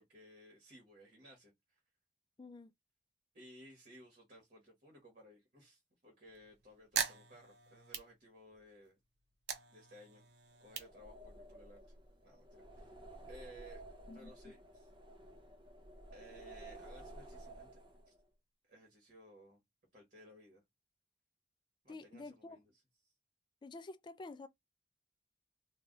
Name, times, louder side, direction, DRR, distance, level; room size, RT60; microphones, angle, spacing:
voice 1, 0.0-1.8 3.3-9.0 9.7-10.3 10.6-11.8 12.2-12.9 13.3-13.8 14.1-14.9 16.1-17.7 18.1-18.2 18.7-19.6 19.9-20.6 21.8-23.1, equal, 45° right, 1.3 m, -58 dB
voice 2, 2.4-2.7 14.1-14.5 21.9-22.6 23.6-24.5, left 3 dB, 25° left, 0.3 m, -49 dB
sound 1, 6.2-8.8 9.2-11.8, right 7 dB, 65° right, 0.7 m, -42 dB
sound 2, 10.7-18.2, right 1 dB, 30° right, 0.6 m, -53 dB
3.2 x 2.3 x 3.8 m
head